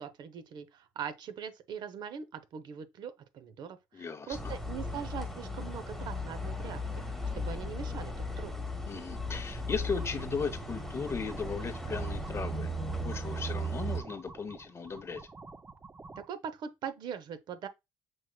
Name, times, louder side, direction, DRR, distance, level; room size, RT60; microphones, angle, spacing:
voice 1, 0.0-8.5 16.2-17.7, right 7 dB, 65° right, 0.7 m, -42 dB
voice 2, 3.9-4.5 8.8-12.8 13.0-15.2, left 5 dB, 35° left, 0.8 m, -37 dB
sound 1, 4.3-14.0, left 1 dB, ahead, 1.1 m, -36 dB
sound 2, 9.6-16.3, right 3 dB, 20° right, 0.5 m, -50 dB
6.2 x 3.0 x 2.2 m
cardioid pair, 90°, 8 cm